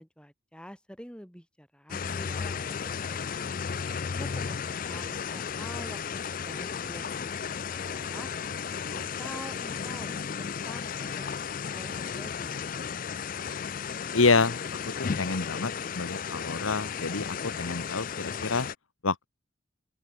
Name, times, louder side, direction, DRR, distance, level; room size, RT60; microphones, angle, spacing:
voice 1, 0.0-2.6 3.1-3.3 4.1-6.0 6.4-8.3 8.9-12.6, equal, 5° left, 7.6 m, -46 dB
sound 1, 1.9-18.7, left 6 dB, 40° left, 0.4 m, -34 dB
voice 2, 14.1-18.7 19.0-19.3, left 4 dB, 85° left, 1.4 m, -28 dB
open air
head